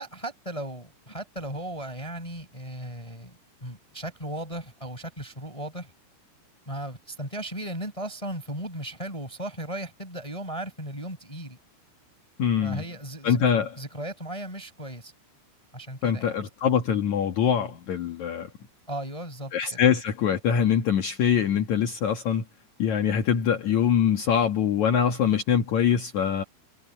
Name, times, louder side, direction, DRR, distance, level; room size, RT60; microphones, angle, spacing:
voice 1, 0.0-5.9 6.6-11.6 12.6-13.4 13.8-15.1 15.7-16.4 18.9-19.8, right 1 dB, 5° left, 5.3 m, -36 dB
voice 2, 12.4-12.8 13.2-13.7 16.0-18.5 19.5-22.4 22.8-26.4, left 8 dB, 70° left, 1.8 m, -23 dB
omnidirectional pair, 5.8 m